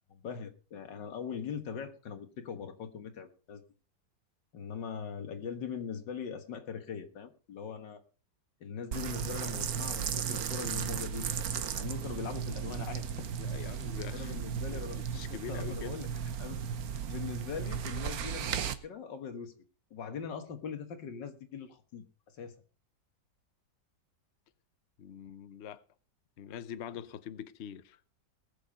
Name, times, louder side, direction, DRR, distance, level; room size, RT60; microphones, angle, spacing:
voice 1, 0.1-3.6 4.5-8.0 8.6-13.3 14.0-16.1 16.4-16.6 16.9-19.5 19.9-22.6, left 7 dB, 85° left, 2.2 m, -41 dB
sound 1, 8.9-18.7, right 8 dB, 60° right, 1.3 m, -35 dB
voice 2, 13.4-14.4 14.7-16.0 25.0-25.8 26.4-28.0, left 9 dB, 55° left, 0.8 m, -44 dB
19.5 x 6.8 x 5.3 m
omnidirectional pair, 1.9 m